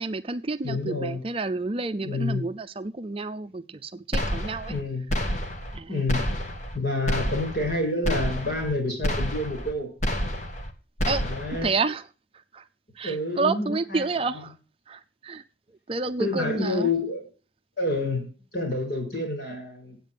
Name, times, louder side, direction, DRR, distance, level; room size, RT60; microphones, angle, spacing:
voice 1, 0.0-4.7 5.7-6.1 11.1-11.2 11.6-12.0 12.5-12.6 13.0-14.6 14.9-15.4 15.7-16.9, right 3 dB, 30° right, 9 dB, 0.5 m, -30 dB
voice 2, 0.6-1.2 2.0-2.4 4.7-5.1 5.9-6.4 6.7-9.9 11.2-11.8 13.0-14.0 14.3-14.4 16.2-17.3 17.8-20.0, left 2 dB, 60° left, 2 dB, 6.1 m, -28 dB
sound 1, 4.1-4.8 5.1-5.8 6.1-6.8 7.1-7.8 8.0-8.7 9.0-9.7 10.0-10.7 11.0-11.7, equal, 40° left, 1.5 m, -28 dB
8.6 x 8.3 x 7.8 m, 0.37 s
head